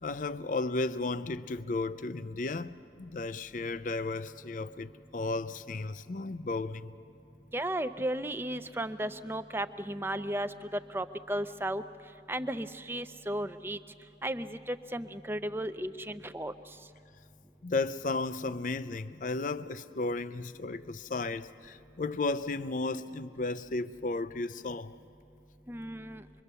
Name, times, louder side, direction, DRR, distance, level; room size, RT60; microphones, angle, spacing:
voice 1, 0.0-7.0 17.6-24.9, left 3 dB, 45° left, 0.5 m, -34 dB
voice 2, 7.5-10.5 10.9-11.8 12.3-13.8 14.2-16.5 25.7-26.2, right 1 dB, 15° right, 0.5 m, -34 dB
26.0 x 22.5 x 6.9 m
head